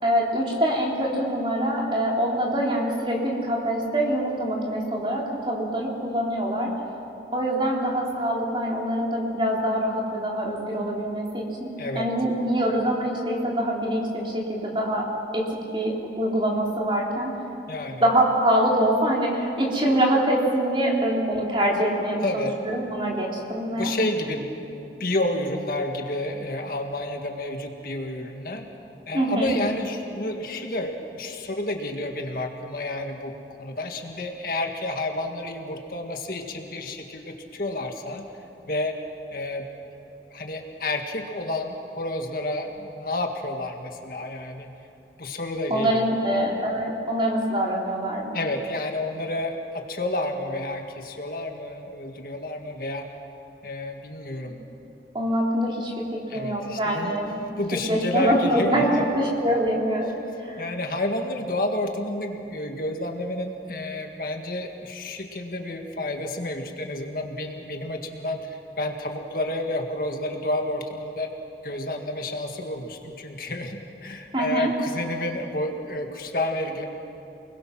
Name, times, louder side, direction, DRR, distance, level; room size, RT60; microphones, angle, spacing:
voice 1, 0.0-6.7 7.3-15.1 15.3-15.5 15.7-17.3 18.0-23.9 29.1-29.5 45.7-48.4 55.1-57.5 57.9-60.7 74.3-74.7, right 1 dB, 30° right, -2 dB, 3.6 m, -24 dB
voice 2, 11.8-12.1 17.7-18.0 22.2-22.6 23.7-28.7 29.1-38.3 38.7-39.0 39.3-39.7 40.3-44.7 45.2-46.1 48.3-53.1 53.6-54.6 56.3-57.2 57.6-59.1 60.6-71.3 71.6-76.9, left 1 dB, 55° left, 3 dB, 1.8 m, -30 dB
29.0 x 21.0 x 6.1 m, 2.8 s
head